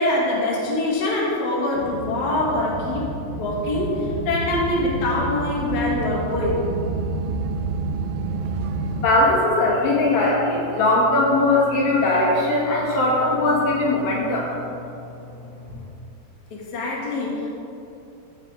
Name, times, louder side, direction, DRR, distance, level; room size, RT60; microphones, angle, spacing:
voice 1, 0.0-3.1 3.4-6.6 16.5-17.6, left 2 dB, 60° left, -5 dB, 3.3 m, -24 dB
sound 1, 1.7-9.1, right 3 dB, 85° right, 2.6 m, -29 dB
voice 2, 8.9-14.5, left 2 dB, 80° left, -5 dB, 3.8 m, -20 dB
14.5 x 8.9 x 4.0 m, 2.8 s
omnidirectional pair, 4.0 m